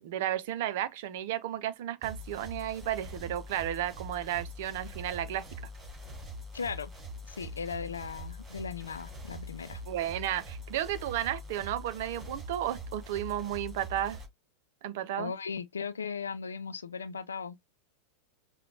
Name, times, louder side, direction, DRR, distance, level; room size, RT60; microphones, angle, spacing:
voice 1, 0.0-5.5 9.9-14.2 14.8-15.3, right 12 dB, 50° right, 0.7 m, -33 dB
sound 1, 2.0-14.3, equal, 20° right, 2.9 m, -43 dB
voice 2, 6.5-6.9 7.2-9.8 15.2-17.6, left 5 dB, 70° left, 0.5 m, -37 dB
5.8 x 2.4 x 3.3 m
figure-of-eight pair, 90°, 0 cm